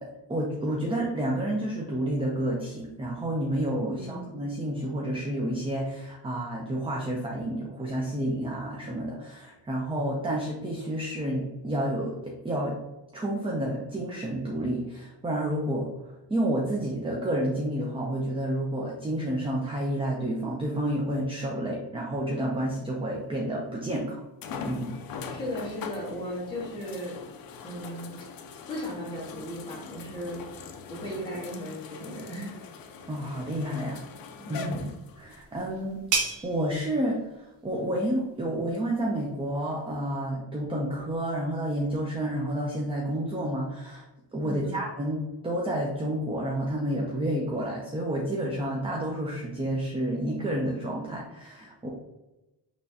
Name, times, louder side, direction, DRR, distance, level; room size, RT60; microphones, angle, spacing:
voice 1, 0.0-12.8 13.1-15.9 16.3-24.2 24.6-24.9 33.1-34.0 34.5-34.8 35.2-44.0 44.3-51.9, right 1 dB, 15° right, -2 dB, 0.5 m, -30 dB
voice 2, 3.9-4.3 25.3-27.2 27.6-28.1 28.7-30.4 30.9-32.6 34.4-34.9 44.4-44.8, equal, 10° left, -6 dB, 1.5 m, -36 dB
sound 1, 23.3-23.4 24.4-35.4 36.2-36.3 39.7-39.8, left 5 dB, 55° left, 0.5 m, -42 dB
sound 2, 34.8-40.2, right 5 dB, 90° right, 1.0 m, -36 dB
5.6 x 3.1 x 2.7 m, 0.98 s
cardioid pair, 175°, 44 cm